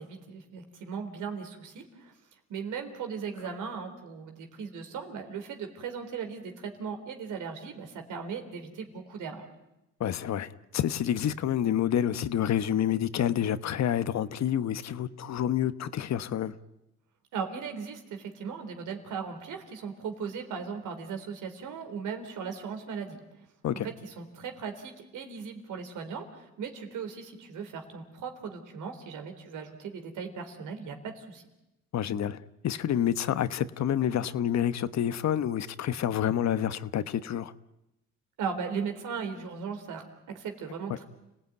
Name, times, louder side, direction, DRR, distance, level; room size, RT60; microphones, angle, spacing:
voice 1, 0.0-2.1 2.5-9.5 17.3-23.2 23.7-31.4 38.4-41.0, right 6 dB, 85° right, 6 dB, 3.9 m, -38 dB
voice 2, 10.0-16.6 23.6-23.9 31.9-37.5, left 10 dB, 60° left, 14 dB, 1.1 m, -28 dB
30.0 x 17.5 x 9.5 m, 0.93 s
cardioid pair, 90°, 30 cm